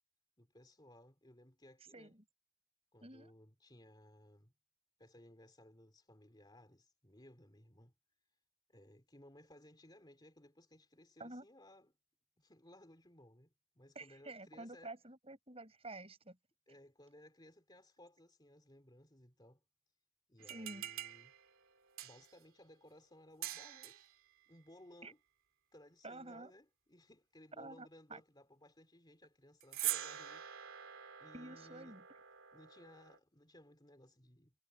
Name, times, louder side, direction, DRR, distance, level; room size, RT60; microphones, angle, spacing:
voice 1, 0.4-2.1 2.9-4.5 5.0-7.9 8.7-11.9 12.4-14.9 16.7-19.6 20.3-21.3 22.0-24.1 24.5-25.2 25.7-30.5 31.2-32.0 32.5-34.5, left 1 dB, 20° left, 3.3 m, -61 dB
voice 2, 1.9-2.2 3.0-3.3 11.2-11.5 14.0-16.4 20.4-20.8 25.0-25.1 26.0-26.5 27.6-28.2 31.3-32.0, right 2 dB, 25° right, 6.9 m, -50 dB
sound 1, 20.4-22.4 23.4-24.1 29.6-33.2, right 13 dB, 65° right, 2.6 m, -44 dB
head